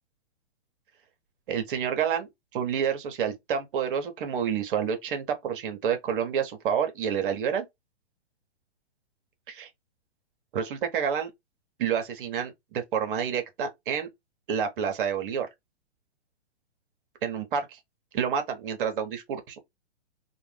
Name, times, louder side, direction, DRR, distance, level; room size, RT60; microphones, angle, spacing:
voice 1, 1.5-7.6 9.5-9.7 10.5-11.3 11.8-14.1 14.5-15.5 17.2-17.8 18.1-19.6, right 7 dB, 50° right, 0.7 m, -29 dB
2.5 x 2.1 x 3.1 m
hypercardioid pair, 130°, 35 cm